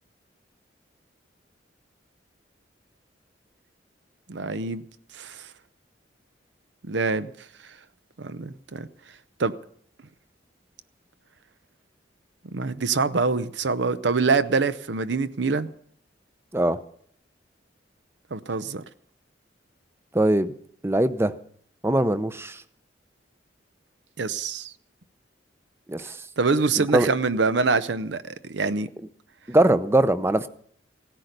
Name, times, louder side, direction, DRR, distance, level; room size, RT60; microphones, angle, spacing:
voice 1, 4.3-4.8 5.1-5.5 6.8-7.3 8.2-8.9 9.4-9.5 12.5-15.7 18.3-18.8 24.2-24.7 26.4-28.9, right 4 dB, 70° right, 0.7 m, -25 dB
voice 2, 20.1-20.5 20.8-21.3 21.8-22.6 25.9-26.2 26.8-27.1 29.5-30.5, right 1 dB, 15° right, 0.6 m, -21 dB
17.0 x 10.0 x 6.6 m
head